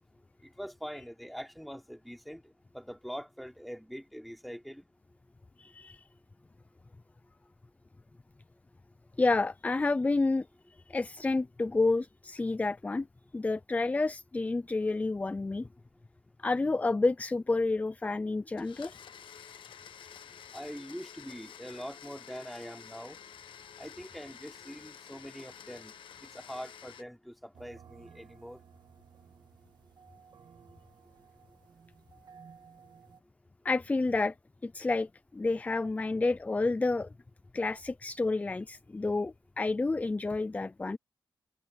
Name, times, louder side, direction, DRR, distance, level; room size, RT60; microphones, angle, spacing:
voice 1, 0.4-4.9 20.5-23.2 23.8-25.9 26.2-28.6, equal, ahead, 3.2 m, -43 dB
voice 2, 5.6-6.1 9.2-13.1 13.3-15.7 16.4-19.0 33.6-34.3 34.6-37.1 37.5-41.0, left 3 dB, 15° left, 0.4 m, -30 dB
Domestic sounds home sounds, 18.6-27.0, left 8 dB, 80° left, 1.3 m, -50 dB
sound 1, 27.5-33.2, right 7 dB, 60° right, 2.0 m, -56 dB
wide cardioid pair, 110°, 8 cm